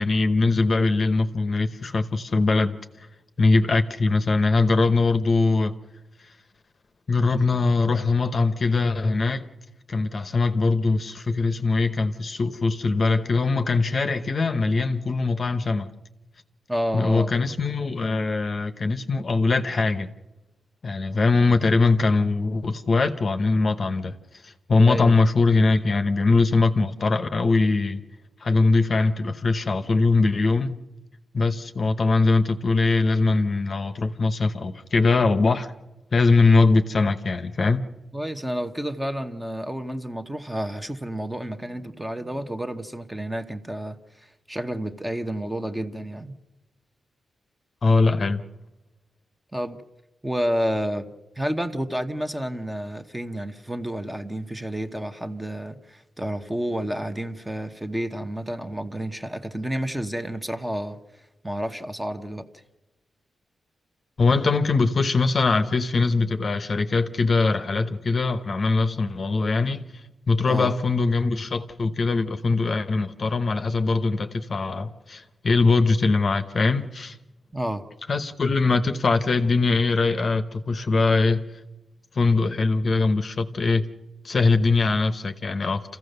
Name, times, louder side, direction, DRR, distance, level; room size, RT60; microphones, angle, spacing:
voice 1, 0.0-2.7 3.4-5.7 7.1-9.5 9.9-15.9 16.9-20.1 20.8-24.1 24.4-28.0 28.4-30.8 31.3-35.7 36.1-37.9 47.8-48.4 64.2-69.9 70.3-77.2 78.1-81.4 82.1-83.8 84.2-85.8, left 3 dB, 35° left, 0.9 m, -21 dB
voice 2, 16.7-17.3 24.8-25.2 38.1-46.3 49.5-49.8 50.2-51.1 51.4-61.0 61.4-62.5 70.5-70.7 77.5-77.9, equal, 10° right, 1.1 m, -30 dB
28.5 x 15.5 x 6.8 m
wide cardioid pair, 165°, 0 cm